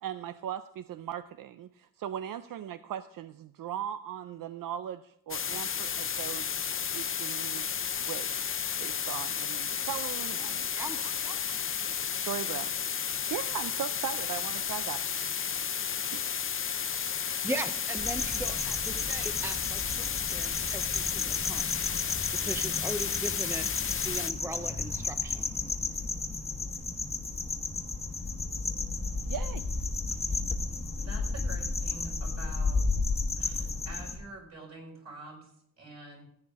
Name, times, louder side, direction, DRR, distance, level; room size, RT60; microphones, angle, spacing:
voice 1, 0.0-6.5 6.9-7.7 8.0-8.5 8.8-10.6 11.0-11.1 12.1-12.7 13.3-15.0 16.1-16.4 29.3-29.7, right 10 dB, 85° right, 12 dB, 0.5 m, -38 dB
sound 1, 5.3-24.3, left 7 dB, 40° left, 0.5 m, -32 dB
voice 2, 10.7-11.4 17.4-21.7 22.4-23.7 24.0-25.8, right 2 dB, 10° right, 9 dB, 0.5 m, -39 dB
sound 2, 18.0-34.2, left 3 dB, 20° left, 1.1 m, -33 dB
voice 3, 31.0-32.8 33.4-36.2, right 1 dB, 50° right, -1 dB, 4.7 m, -47 dB
15.5 x 8.7 x 3.5 m, 0.71 s
wide cardioid pair, 140°, 33 cm